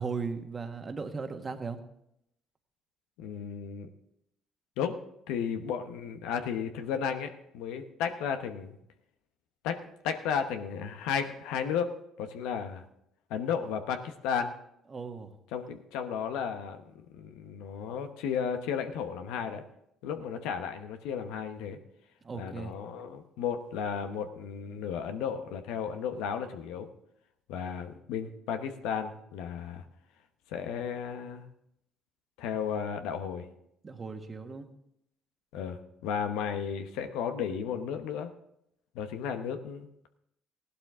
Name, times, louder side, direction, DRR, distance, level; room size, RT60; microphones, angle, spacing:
voice 1, 0.0-1.8 14.9-15.3 22.2-22.8 33.8-34.7, right 5 dB, 35° right, 6 dB, 1.6 m, -37 dB
voice 2, 3.2-3.9 4.8-5.0 5.3-8.8 9.6-9.8 10.0-12.8 13.3-14.5 15.5-19.6 20.0-21.8 22.3-26.9 27.5-29.8 30.5-31.4 32.4-33.5 35.5-38.3 38.9-39.9, left 7 dB, 80° left, 7 dB, 1.0 m, -34 dB
16.5 x 11.5 x 3.7 m, 0.78 s
hypercardioid pair, 60°, 0 cm